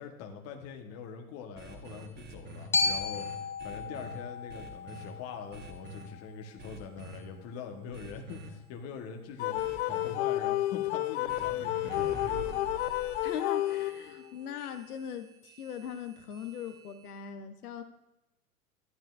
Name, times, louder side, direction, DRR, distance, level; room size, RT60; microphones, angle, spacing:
voice 1, 0.0-12.6, left 6 dB, 35° left, 3 dB, 1.1 m, -43 dB
sound 1, 1.6-4.2 4.5-5.1 5.5-6.1 6.6-7.2 7.9-8.5 9.6-10.1 11.3-17.1, right 2 dB, 20° right, 1.2 m, -47 dB
Glockenspiel, 2.7-6.8, left 4 dB, 5° left, 0.5 m, -34 dB
sound 2, 9.4-14.3, left 15 dB, 50° left, 0.5 m, -31 dB
voice 2, 13.2-17.8, left 8 dB, 80° left, 9 dB, 0.8 m, -40 dB
11.5 x 10.5 x 2.4 m, 0.95 s
hypercardioid pair, 100°, 45 cm